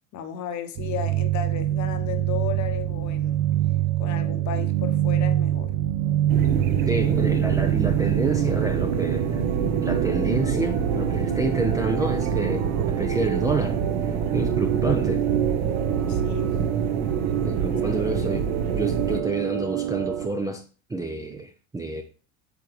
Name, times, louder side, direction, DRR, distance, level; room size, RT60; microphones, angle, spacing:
voice 1, 0.1-3.4 4.0-5.7 14.9-15.0 16.1-16.6, left 9 dB, 45° left, 1.0 m, -34 dB
sound 1, 0.8-20.3, right 12 dB, 70° right, 0.8 m, -26 dB
sound 2, 6.3-19.2, right 6 dB, 50° right, 0.9 m, -26 dB
voice 2, 6.9-9.4 9.8-12.7 13.0-13.8 14.1-15.2 17.4-18.5 18.7-20.6 20.9-22.0, right 3 dB, 10° right, 0.4 m, -28 dB
7.9 x 3.8 x 3.1 m
hypercardioid pair, 100°, 41 cm